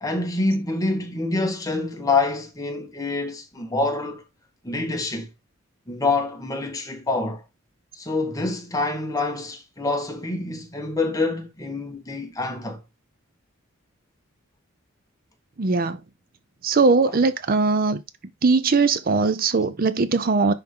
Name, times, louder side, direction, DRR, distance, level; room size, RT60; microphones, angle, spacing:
voice 1, 0.0-4.2 4.6-5.3 5.9-7.4 7.9-12.8 17.1-17.2, left 3 dB, 15° left, 1.4 m, -26 dB
voice 2, 15.6-16.0 16.6-18.0 18.4-20.5, right 4 dB, 40° right, 0.5 m, -20 dB
10.5 x 3.6 x 3.6 m
head